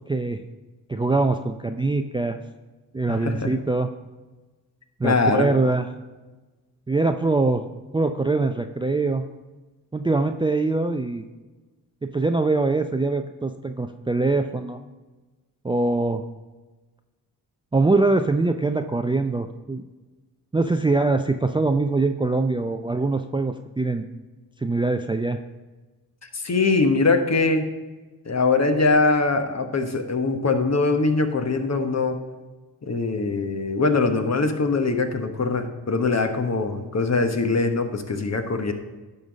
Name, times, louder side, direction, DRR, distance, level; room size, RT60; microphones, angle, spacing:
voice 1, 0.1-0.4 0.9-2.4 2.9-3.9 5.0-5.9 6.9-7.6 7.9-9.2 9.9-11.2 12.0-14.8 15.6-16.2 17.7-19.8 20.5-24.0 24.6-25.4, right 3 dB, 10° right, 7 dB, 0.4 m, -23 dB
voice 2, 3.1-3.5 5.0-5.5 26.3-27.7 28.3-32.2 32.8-38.7, left 3 dB, 40° left, 7 dB, 1.1 m, -22 dB
11.0 x 4.0 x 5.2 m, 1.2 s
supercardioid pair, 45°, 41 cm